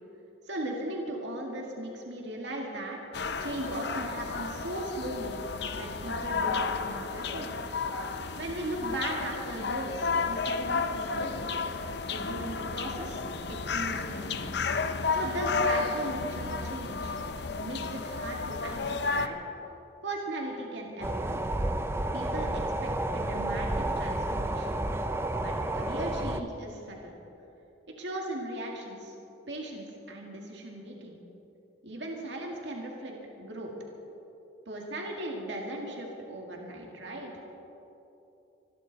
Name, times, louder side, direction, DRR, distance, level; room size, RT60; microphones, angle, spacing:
voice 1, 0.5-3.0 3.4-5.4 5.7-7.5 8.4-11.5 12.1-13.2 13.5-14.5 15.1-17.1 17.6-19.4 20.0-21.4 22.1-24.8 25.4-27.1 28.0-29.1 29.5-31.2 31.8-33.7 34.7-37.4, right 1 dB, 60° right, 0 dB, 2.0 m, -38 dB
sound 1, 3.1-19.3, left 4 dB, 55° left, 0.7 m, -32 dB
sound 2, 21.0-26.4, right 1 dB, 10° right, 0.5 m, -31 dB
25.5 x 12.5 x 4.1 m, 3.0 s
head